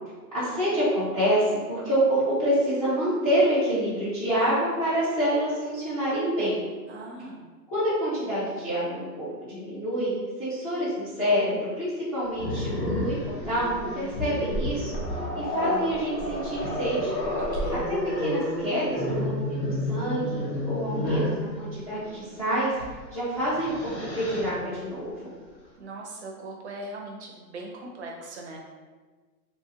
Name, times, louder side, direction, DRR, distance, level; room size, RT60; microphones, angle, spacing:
voice 1, 0.3-6.6 7.7-13.2 13.4-14.9 15.3-17.2 17.9-22.7 23.1-25.3, equal, 25° left, -10 dB, 0.4 m, -27 dB
voice 2, 6.9-7.4 17.4-18.0 25.8-28.6, right 2 dB, 45° right, 0 dB, 0.5 m, -40 dB
Growling, 12.4-21.4 22.7-22.9 23.4-24.5, left 1 dB, 90° left, 1.1 m, -30 dB
2.9 x 2.7 x 2.7 m, 1.4 s
hypercardioid pair, 150°, 50 cm